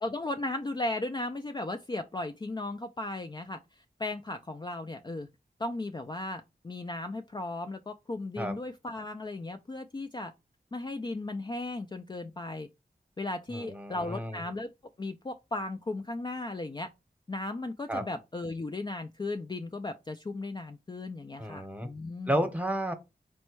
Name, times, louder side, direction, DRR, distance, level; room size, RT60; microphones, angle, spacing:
voice 1, 0.0-3.6 4.0-5.3 5.6-10.3 10.7-12.7 13.2-14.7 15.0-16.9 17.3-22.4, left 2 dB, 25° left, 0.4 m, -36 dB
voice 2, 13.5-14.4 17.9-18.0 21.4-21.9 22.3-22.9, right 1 dB, 10° right, 0.9 m, -31 dB
4.3 x 2.2 x 4.5 m
wide cardioid pair, 55°, 17 cm